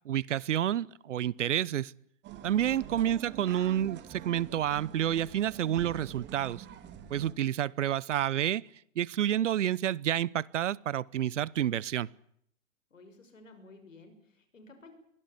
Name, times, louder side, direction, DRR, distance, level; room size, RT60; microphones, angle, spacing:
voice 1, 0.0-1.9 2.4-6.6 7.1-8.7 9.0-12.1, right 11 dB, 70° right, 0.8 m, -29 dB
sound 1, 2.2-7.3, right 10 dB, 30° right, 2.8 m, -46 dB
voice 2, 12.9-14.9, left 3 dB, 85° left, 6.5 m, -54 dB
23.0 x 16.5 x 9.9 m
hypercardioid pair, 120°, 38 cm